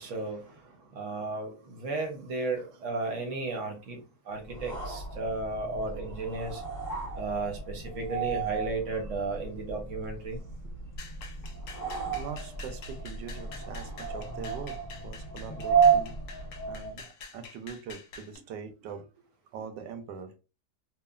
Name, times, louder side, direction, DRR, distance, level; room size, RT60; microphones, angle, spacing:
voice 1, 0.0-4.0 4.3-6.6 7.2-10.4, right 3 dB, 60° right, 0.8 m, -34 dB
sound 1, 4.5-17.0, right 6 dB, 15° left, 0.7 m, -32 dB
sound 2, 11.0-18.4, left 4 dB, 65° left, 0.8 m, -47 dB
voice 2, 12.0-20.4, right 6 dB, 90° right, 1.2 m, -43 dB
3.1 x 2.1 x 2.3 m
omnidirectional pair, 1.8 m